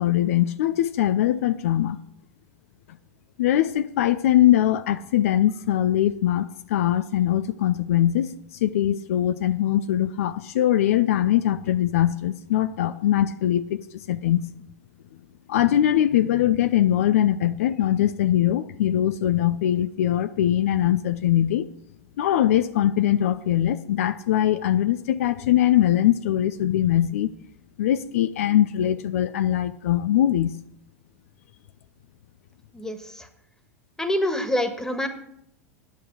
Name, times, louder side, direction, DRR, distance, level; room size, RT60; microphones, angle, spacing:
voice 1, 0.0-2.0 3.4-8.3 8.6-14.5 15.5-21.7 22.2-27.3 27.8-30.6, left 12 dB, 70° left, 0.5 m, -22 dB
voice 2, 32.7-33.3 34.0-35.1, left 1 dB, 5° left, 1.6 m, -26 dB
10.0 x 8.2 x 6.2 m
hypercardioid pair, 90°, 8 cm